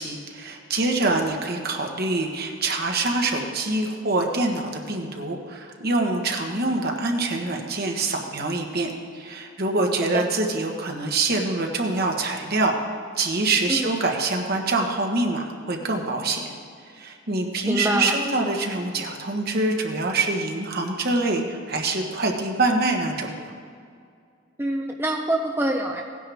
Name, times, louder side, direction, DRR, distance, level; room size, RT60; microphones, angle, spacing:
voice 1, 0.0-12.8 13.2-16.4 16.9-23.3, right 2 dB, 50° right, 2 dB, 1.3 m, -25 dB
voice 2, 17.7-18.2 24.6-26.0, right 1 dB, 10° right, 2 dB, 0.6 m, -25 dB
17.5 x 10.0 x 3.5 m, 2.3 s
head